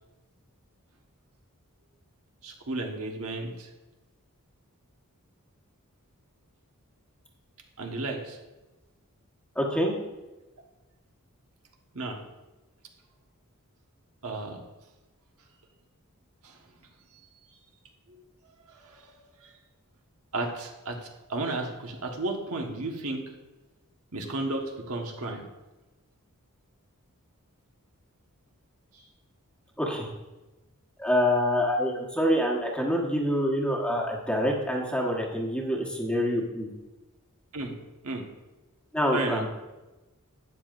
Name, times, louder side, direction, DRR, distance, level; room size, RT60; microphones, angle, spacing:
voice 1, 2.4-3.7 7.8-8.4 11.9-12.2 14.2-14.6 16.4-16.6 18.1-18.2 18.7-19.5 20.3-23.2 24.1-25.5 28.9-29.0 37.5-37.7 38.0-38.2 39.1-39.4, right 2 dB, 70° right, 2 dB, 1.4 m, -33 dB
voice 2, 9.5-9.9 29.8-30.1 31.0-36.7 38.9-39.5, equal, 5° left, -1 dB, 1.3 m, -26 dB
12.5 x 9.3 x 2.6 m, 1.1 s
head